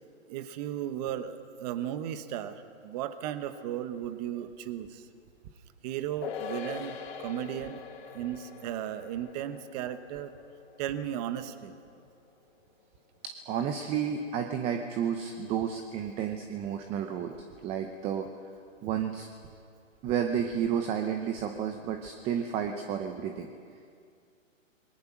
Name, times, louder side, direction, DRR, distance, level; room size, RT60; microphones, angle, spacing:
voice 1, 0.3-5.0 5.8-7.8 8.1-10.3 10.8-11.7, right 11 dB, 30° right, 10 dB, 1.3 m, -35 dB
sound 1, 6.2-12.9 13.2-13.3, left 7 dB, 50° left, 3.2 m, -43 dB
voice 2, 13.2-17.3 17.6-18.3 18.8-19.3 20.0-23.5, right 8 dB, 15° right, 6 dB, 0.8 m, -31 dB
27.5 x 22.0 x 6.1 m, 2.3 s
hypercardioid pair, 145°, 39 cm